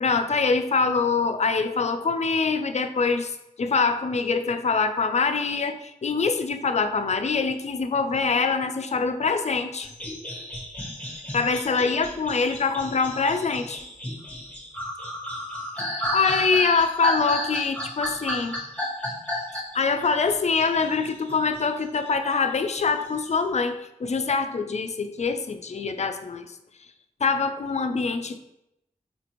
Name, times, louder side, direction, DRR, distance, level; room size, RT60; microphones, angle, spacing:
voice 1, 0.0-3.3 3.6-9.9 11.3-13.8 16.1-18.6 19.7-26.5 27.2-28.4, left 4 dB, 50° left, 8 dB, 0.4 m, -24 dB
sound 1, 9.8-21.6 22.0-23.3, equal, 10° left, 1.0 m, -33 dB
5.0 x 2.5 x 2.9 m, 0.85 s
cardioid pair, 45°, 14 cm